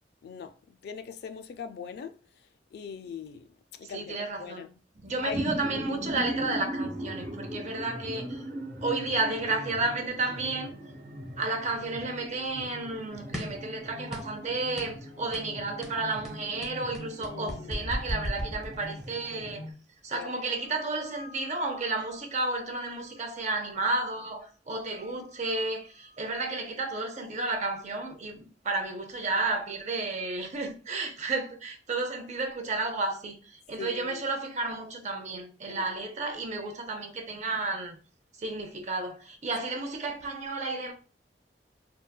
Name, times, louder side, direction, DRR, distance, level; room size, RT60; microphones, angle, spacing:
voice 1, 0.2-2.2 2.7-3.5 3.8-4.7 5.2-5.4 17.2-17.9 20.1-20.3 33.8-34.2 35.7-35.8, left 6 dB, 60° left, 0.3 m, -41 dB
voice 2, 3.8-4.6 5.0-8.4 8.8-10.7 11.4-19.6 20.0-38.0 38.4-40.9, right 3 dB, 40° right, 0.5 m, -32 dB
sound 1, 4.9-19.7, equal, 55° right, 1.0 m, -39 dB
sound 2, 13.3-13.7 14.1-14.4 14.8-15.0 15.3-15.5 15.8-19.1, equal, 5° right, 0.7 m, -36 dB
sound 3, 20.4-23.3 23.7-24.5 24.8-26.4, left 3 dB, 90° left, 0.7 m, -51 dB
3.8 x 2.1 x 2.2 m
head